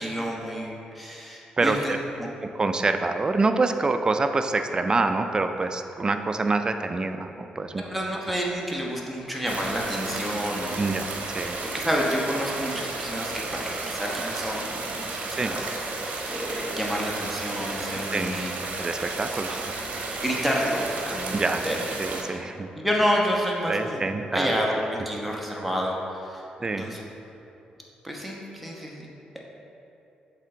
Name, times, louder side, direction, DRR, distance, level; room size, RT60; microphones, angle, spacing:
voice 1, 0.0-2.3 7.9-11.0 11.6-15.6 16.0-18.6 19.0-19.1 20.2-21.8 22.3-22.4 22.8-26.5 26.8-27.1 28.0-29.1, equal, ahead, -2 dB, 1.0 m, -29 dB
voice 2, 1.6-2.0 2.4-7.8 8.3-8.4 10.8-11.1 11.3-11.6 15.4-15.5 18.1-18.4 18.8-19.6 21.3-21.6 22.0-22.7 23.7-24.5 26.6-26.9, right 3 dB, 30° right, 7 dB, 0.4 m, -26 dB
sound 1, 9.5-22.2, right 3 dB, 65° right, 0.8 m, -33 dB
7.4 x 3.4 x 3.8 m, 2.9 s
cardioid pair, 80°, 3 cm